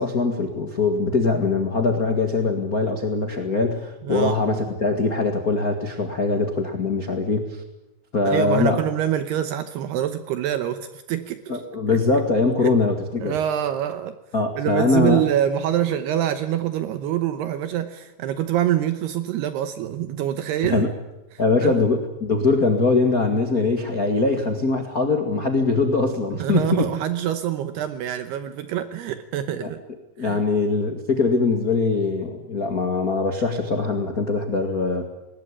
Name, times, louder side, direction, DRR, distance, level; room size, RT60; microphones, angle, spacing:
voice 1, 0.0-7.6 8.1-8.8 11.5-13.4 14.3-15.2 20.7-20.9 21.4-26.9 29.6-29.7 30.2-35.0, left 3 dB, 85° left, 4 dB, 0.8 m, -22 dB
voice 2, 4.0-4.4 8.3-11.6 12.6-12.7 13.2-14.2 14.6-20.9 21.3-21.8 26.4-29.8 30.2-30.4, right 11 dB, 75° right, 10 dB, 2.8 m, -25 dB
20.0 x 20.0 x 9.9 m, 0.98 s
omnidirectional pair, 5.1 m